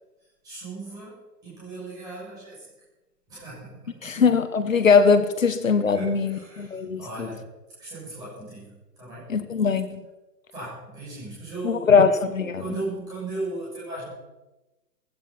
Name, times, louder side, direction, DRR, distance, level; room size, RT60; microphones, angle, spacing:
voice 1, 0.2-2.7 3.3-4.2 5.8-7.5 7.8-9.3 10.5-12.1 12.6-14.1, right 2 dB, 5° right, 7.0 m, -37 dB
voice 2, 4.0-7.0 9.3-10.0 11.6-12.6, left 5 dB, 50° left, 1.3 m, -20 dB
16.0 x 14.5 x 5.9 m
hypercardioid pair, 180°, 49 cm